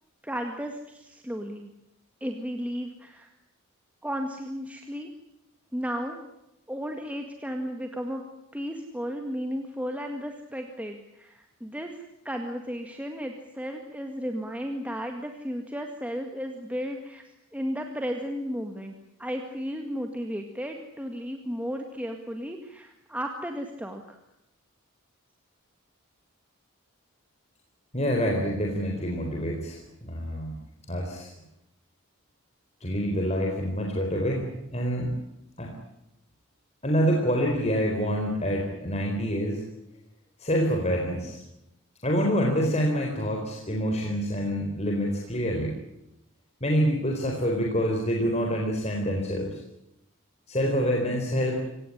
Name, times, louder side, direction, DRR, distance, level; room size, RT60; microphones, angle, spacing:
voice 1, 0.2-1.7 2.2-3.3 4.0-5.1 5.7-6.2 6.7-8.2 8.5-18.9 19.2-24.2, equal, 5° right, 4 dB, 1.9 m, -34 dB
voice 2, 27.9-30.5 30.9-31.3 32.8-35.1 35.6-35.7 36.8-39.6 40.4-41.4 42.0-45.8 46.6-49.6 50.5-51.6, equal, 30° left, 0 dB, 4.1 m, -26 dB
26.5 x 18.0 x 10.0 m, 0.88 s
head